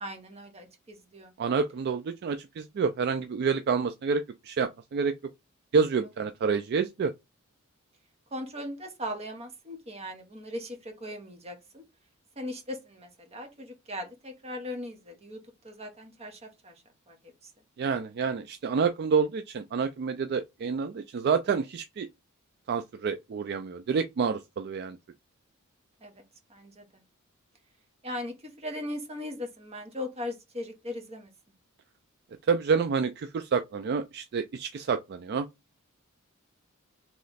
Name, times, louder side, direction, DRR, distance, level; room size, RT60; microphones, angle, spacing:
voice 1, 0.0-1.3 8.3-11.8 12.4-16.7 17.1-17.2 26.0-26.2 26.5-26.8 28.0-31.3, left 1 dB, 30° right, 1.1 m, -39 dB
voice 2, 1.4-5.1 5.7-7.1 17.8-22.1 22.7-25.0 32.5-35.5, right 5 dB, 50° right, 0.3 m, -28 dB
3.2 x 3.1 x 3.9 m
head